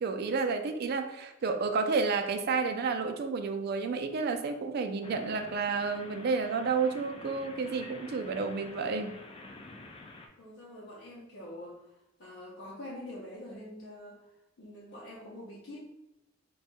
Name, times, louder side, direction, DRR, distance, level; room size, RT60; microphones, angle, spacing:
voice 1, 0.0-9.2, right 4 dB, 50° right, 7 dB, 0.3 m, -31 dB
sound 1, 5.0-10.3, left 2 dB, 30° left, 0.4 m, -48 dB
voice 2, 10.4-11.8 12.2-14.2 14.6-15.8, left 1 dB, 75° left, -6 dB, 0.7 m, -45 dB
2.7 x 2.3 x 4.1 m, 0.87 s
head